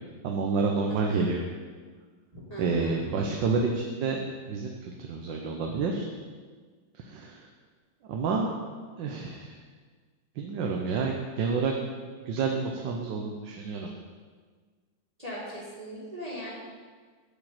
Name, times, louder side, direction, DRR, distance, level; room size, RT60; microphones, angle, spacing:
voice 1, 0.2-1.4 2.6-4.2 4.5-6.1 7.0-7.5 8.1-8.5 9.0-9.6 10.4-11.7 12.2-13.9, right 4 dB, 75° right, 1 dB, 1.5 m, -29 dB
voice 2, 0.9-1.3 2.3-3.0 15.2-16.5, equal, 20° right, -7 dB, 2.1 m, -39 dB
8.5 x 5.2 x 7.6 m, 1.5 s
omnidirectional pair, 2.0 m